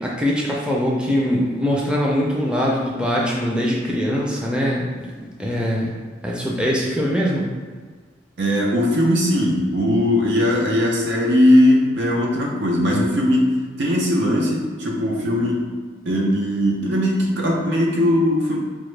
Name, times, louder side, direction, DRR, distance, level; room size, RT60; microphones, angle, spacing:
voice 1, 0.0-6.0 6.2-7.5, equal, 5° right, -4 dB, 0.5 m, -22 dB
voice 2, 8.4-13.5 13.8-15.7 16.1-18.6, left 1 dB, 70° right, -2 dB, 0.7 m, -19 dB
4.9 x 2.1 x 3.2 m, 1.5 s
head